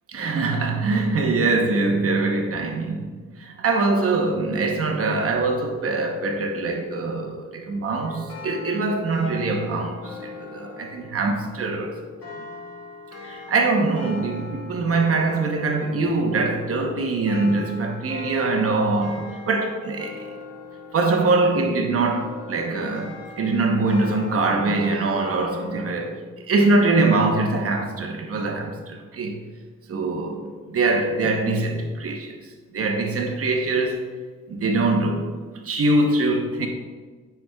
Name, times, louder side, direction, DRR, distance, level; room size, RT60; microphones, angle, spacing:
voice 1, 0.1-3.0 3.4-12.0 13.2-20.3 20.9-26.2 26.5-29.4 29.9-32.3 32.7-34.1 34.5-35.3 35.6-36.7, right 3 dB, 50° right, 0.9 m, -23 dB
sound 1, 8.0-26.1, left 4 dB, 55° left, 1.6 m, -41 dB
9.3 x 5.8 x 2.3 m
cardioid pair, 90°, 30 cm